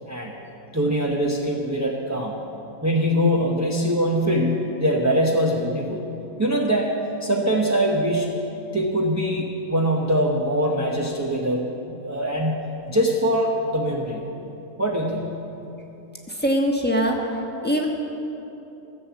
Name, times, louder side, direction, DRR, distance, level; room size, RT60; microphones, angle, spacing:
voice 1, 0.7-2.3 2.8-6.0 6.4-6.9 7.2-8.4 8.7-12.5 12.9-14.2 14.8-15.3, equal, 15° right, -2 dB, 0.8 m, -23 dB
voice 2, 16.4-17.2 17.6-17.9, equal, 10° left, -1 dB, 1.2 m, -21 dB
15.5 x 7.7 x 7.1 m, 3.0 s
omnidirectional pair, 1.5 m